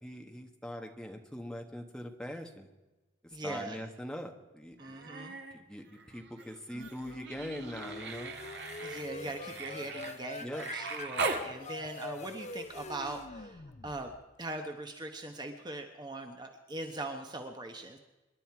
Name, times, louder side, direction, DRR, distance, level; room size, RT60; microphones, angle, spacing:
voice 1, 0.0-2.7 3.2-4.9 5.5-8.3 10.4-10.6, equal, 5° left, 3 dB, 1.4 m, -42 dB
voice 2, 3.3-3.8 4.8-5.4 8.8-18.0, right 2 dB, 20° right, 5 dB, 1.0 m, -41 dB
Human voice, 4.8-5.6 5.9-11.5 13.1-13.2, right 3 dB, 55° right, 1.7 m, -40 dB
sound 1, 6.7-14.4, left 3 dB, 35° left, 0.6 m, -45 dB
26.5 x 11.0 x 4.7 m, 1.1 s
head